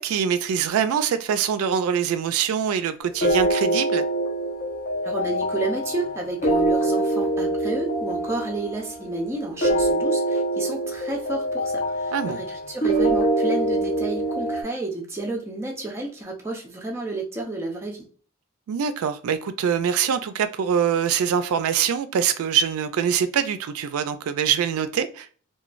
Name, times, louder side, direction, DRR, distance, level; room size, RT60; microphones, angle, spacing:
voice 1, 0.0-4.1 12.1-12.4 18.7-25.3, right 8 dB, 75° right, 0.3 m, -24 dB
sound 1, 3.2-14.6, right 1 dB, 40° left, 0.6 m, -24 dB
voice 2, 5.0-18.1, right 2 dB, 10° right, 0.4 m, -31 dB
3.0 x 2.2 x 2.4 m
head